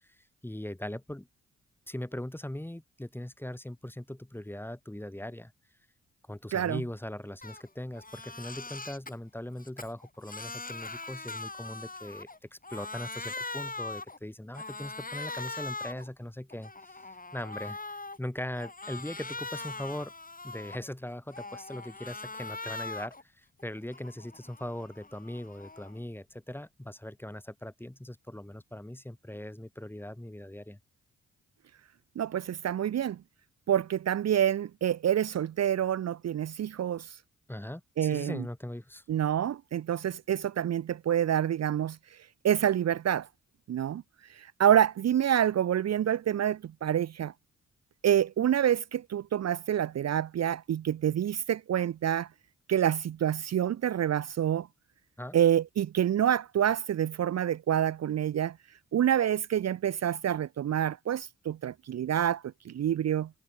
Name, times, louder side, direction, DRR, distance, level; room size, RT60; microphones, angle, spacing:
voice 1, 0.4-1.3 1.9-5.5 6.3-17.0 17.3-17.8 18.2-20.1 20.4-30.8 37.5-39.0 55.2-55.4, left 1 dB, 5° left, 2.0 m, -40 dB
Crying sobbing, 7.4-7.6 8.0-9.1 9.6-12.4 12.6-14.2 14.5-16.1 16.5-18.2 18.6-20.9 21.3-23.2 23.6-26.0, left 3 dB, 25° left, 4.6 m, -41 dB
voice 2, 32.2-33.2 33.7-37.2 38.0-38.4 39.1-42.2 42.4-43.3 43.7-44.0 44.3-47.3 48.0-52.3 52.7-54.7 55.3-58.6 58.9-63.3, right 10 dB, 55° right, 0.7 m, -27 dB
supercardioid pair, 50°, 31 cm